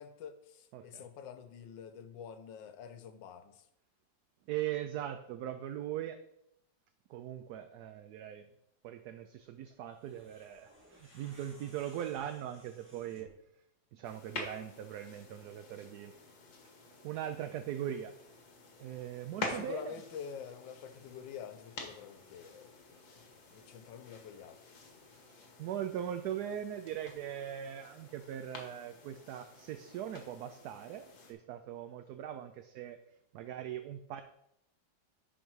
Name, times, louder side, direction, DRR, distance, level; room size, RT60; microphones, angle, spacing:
voice 1, 0.0-3.7 19.5-24.6, left 7 dB, 85° left, 9 dB, 1.4 m, -47 dB
voice 2, 0.7-1.1 4.5-6.2 7.1-8.5 8.8-13.3 13.9-16.1 17.0-18.1 18.8-19.9 25.1-33.0 33.3-34.2, right 10 dB, 70° right, 9 dB, 1.0 m, -40 dB
sound 1, 9.8-13.5, equal, 5° right, 1.6 m, -60 dB
sound 2, 14.0-31.3, left 3 dB, 55° left, 1.9 m, -48 dB
10.5 x 4.3 x 4.6 m, 0.78 s
omnidirectional pair, 2.0 m